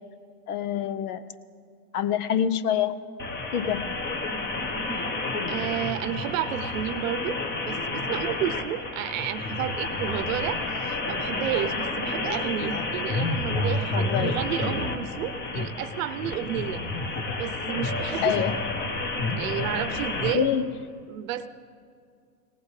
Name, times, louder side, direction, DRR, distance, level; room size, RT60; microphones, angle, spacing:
voice 1, 0.5-1.2 1.9-2.9 3.5-3.9 13.9-14.4 18.2-18.6 20.3-20.7, left 9 dB, 75° left, 13 dB, 0.8 m, -26 dB
sound 1, 3.2-20.3, left 2 dB, 20° left, 1.1 m, -30 dB
voice 2, 5.5-16.8 17.4-18.4 19.4-20.5 21.1-21.5, right 11 dB, 60° right, 13 dB, 0.8 m, -31 dB
19.0 x 18.5 x 3.3 m, 2.3 s
hypercardioid pair, 130°, 46 cm